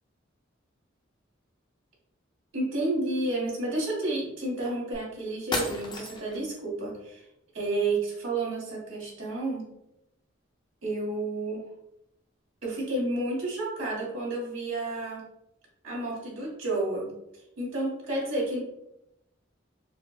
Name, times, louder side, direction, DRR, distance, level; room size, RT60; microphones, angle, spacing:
voice 1, 2.5-7.3 7.5-9.7 10.8-11.7 12.6-15.2 15.8-17.1 17.6-18.6, right 2 dB, 85° right, -5 dB, 1.5 m, -31 dB
sound 1, 4.9-5.0 5.5-6.4, left 1 dB, 25° left, 0.5 m, -32 dB
4.6 x 2.0 x 2.3 m, 0.84 s
head